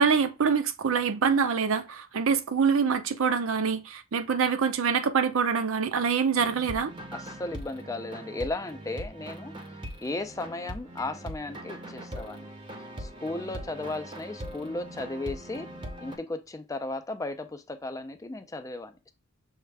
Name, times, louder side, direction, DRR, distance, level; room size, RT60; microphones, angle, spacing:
voice 1, 0.0-6.9, right 6 dB, 70° right, 0.5 m, -25 dB
sound 1, 6.4-16.2, right 1 dB, 25° right, 0.7 m, -41 dB
voice 2, 7.1-12.5 12.8-15.7 16.0-19.1, left 2 dB, 15° left, 0.4 m, -35 dB
6.3 x 2.4 x 3.3 m
head